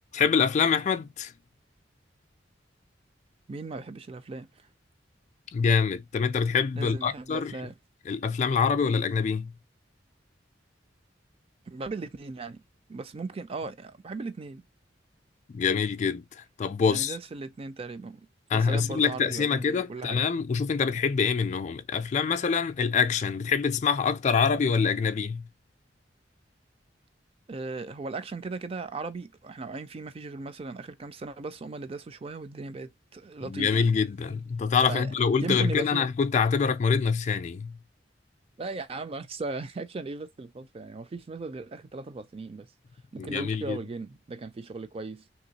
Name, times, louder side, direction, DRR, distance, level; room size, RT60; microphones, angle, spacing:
voice 1, 0.1-1.3 5.5-7.5 8.1-9.5 15.5-17.2 18.5-25.4 33.4-37.8 43.2-43.8, left 6 dB, 40° left, 0.3 m, -25 dB
voice 2, 3.5-4.5 6.8-7.7 11.7-12.6 12.9-14.6 16.9-18.3 18.5-20.2 27.5-33.8 34.9-35.1 35.4-36.1 38.6-42.7 43.1-45.2, right 3 dB, 30° right, 0.4 m, -37 dB
3.1 x 2.9 x 2.8 m
head